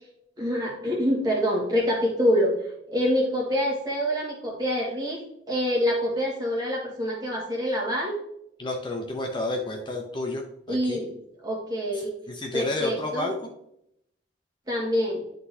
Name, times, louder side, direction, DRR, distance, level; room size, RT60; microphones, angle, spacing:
voice 1, 0.4-2.6 2.9-5.2 5.5-8.2 10.7-11.1 11.4-12.1 12.5-13.3 14.7-15.2, equal, 20° right, -2 dB, 1.9 m, -26 dB
voice 2, 8.6-11.0 12.0-13.5, left 1 dB, 25° left, 1 dB, 0.7 m, -31 dB
10.5 x 3.9 x 2.7 m, 0.75 s
head